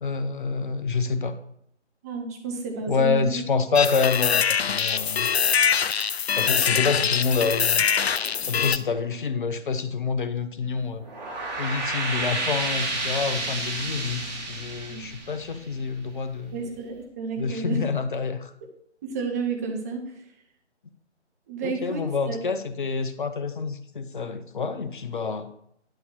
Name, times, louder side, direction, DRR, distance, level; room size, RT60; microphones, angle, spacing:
voice 1, 0.0-1.4 2.9-5.3 6.3-7.9 8.5-11.0 11.6-16.6 17.4-18.5 21.6-25.5, left 5 dB, 45° left, 0.9 m, -27 dB
voice 2, 2.0-3.4 14.9-15.0 16.5-17.8 19.0-20.0 21.5-22.4, right 4 dB, 15° right, 0.9 m, -31 dB
sound 1, 3.7-8.8, left 7 dB, 65° left, 0.5 m, -23 dB
sound 2, 10.9-16.2, right 2 dB, 35° right, 2.9 m, -30 dB
11.0 x 5.4 x 4.7 m
figure-of-eight pair, 145°, 35 cm